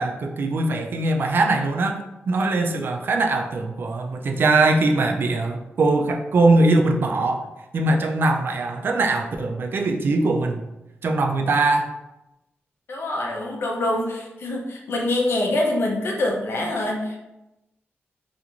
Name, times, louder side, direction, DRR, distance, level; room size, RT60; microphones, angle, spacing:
voice 1, 0.0-7.4 7.7-10.6 11.0-11.9, right 2 dB, 55° right, 4 dB, 0.3 m, -21 dB
voice 2, 12.9-17.2, left 1 dB, 60° left, 0 dB, 0.5 m, -25 dB
2.4 x 2.4 x 2.9 m, 0.94 s
wide cardioid pair, 115°, 4 cm